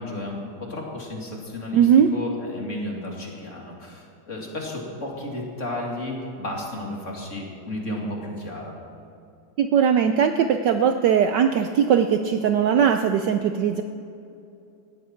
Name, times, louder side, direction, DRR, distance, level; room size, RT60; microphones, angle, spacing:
voice 1, 0.0-8.7, left 1 dB, 35° left, -1 dB, 2.6 m, -33 dB
voice 2, 1.7-2.1 9.6-13.8, right 8 dB, 70° right, 8 dB, 1.1 m, -19 dB
18.5 x 14.0 x 4.5 m, 2.7 s
omnidirectional pair, 2.3 m